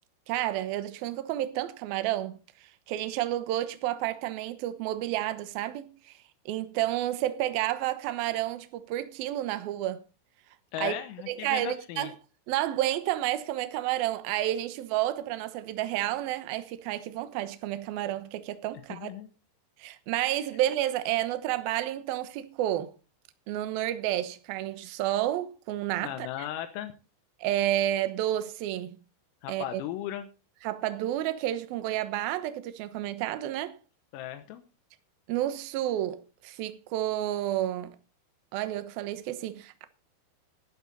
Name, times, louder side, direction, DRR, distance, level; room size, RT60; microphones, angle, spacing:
voice 1, 0.3-2.4 2.9-5.9 6.5-10.0 10.8-10.9 11.3-12.1 12.5-19.1 19.8-22.9 23.5-26.3 27.4-29.0 29.5-29.8 30.6-33.8 35.3-37.9 38.5-39.9, right 13 dB, 80° right, 2.1 m, -30 dB
voice 2, 10.7-12.1 18.9-19.3 26.0-26.9 29.4-30.3 34.1-34.6, left 12 dB, 85° left, 3.8 m, -36 dB
12.5 x 12.0 x 4.1 m
omnidirectional pair, 6.0 m